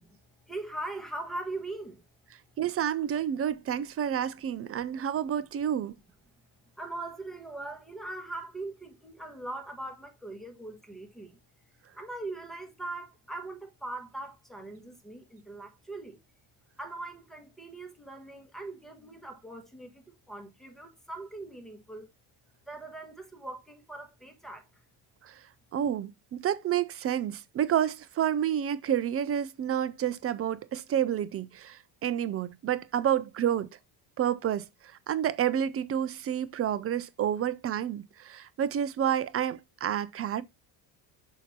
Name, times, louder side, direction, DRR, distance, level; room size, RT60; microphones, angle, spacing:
voice 1, 0.4-2.0 6.8-11.4 11.9-16.2 16.8-22.1 22.7-24.7, right 2 dB, ahead, 1.3 m, -41 dB
voice 2, 2.6-6.0 25.2-25.4 25.7-33.7 34.2-40.4, right 10 dB, 30° right, 0.4 m, -29 dB
7.2 x 2.8 x 5.9 m
cardioid pair, 165°, 50 cm